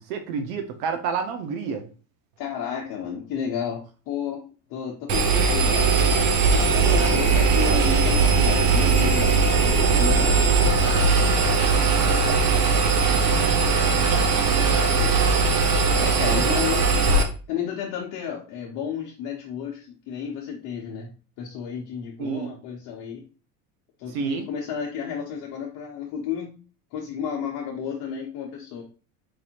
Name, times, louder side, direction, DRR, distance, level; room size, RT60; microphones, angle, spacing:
voice 1, 0.0-1.9 16.3-16.6 22.2-22.5 24.1-24.5, right 6 dB, 80° right, 5 dB, 0.8 m, -29 dB
voice 2, 2.4-4.4 4.7-5.9 6.5-11.6 11.9-12.2 13.1-13.4 13.7-15.3 16.0-17.0 17.5-21.1 21.4-23.2 24.0-26.5 26.9-28.8, left 7 dB, 50° left, -2 dB, 0.8 m, -32 dB
Engine, 5.1-17.2, right 4 dB, 45° right, 0.7 m, -19 dB
4.7 x 2.6 x 2.8 m, 0.36 s
supercardioid pair, 145°, 41 cm